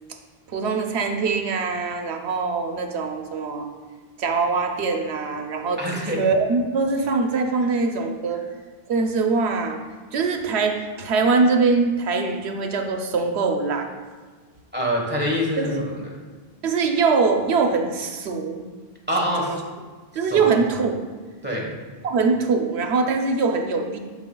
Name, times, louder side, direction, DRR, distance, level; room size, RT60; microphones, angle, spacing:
voice 1, 0.5-3.7 4.2-8.4 8.9-9.8 10.1-13.9 15.6-15.9 16.6-18.6 19.4-19.6 20.1-21.1 22.0-24.0, right 4 dB, 85° right, 4 dB, 1.0 m, -23 dB
voice 2, 5.8-6.2 14.7-16.1 19.1-19.5 20.3-20.5 21.4-21.7, equal, 10° right, -2 dB, 1.2 m, -25 dB
10.5 x 4.8 x 2.3 m, 1.4 s
omnidirectional pair, 1.1 m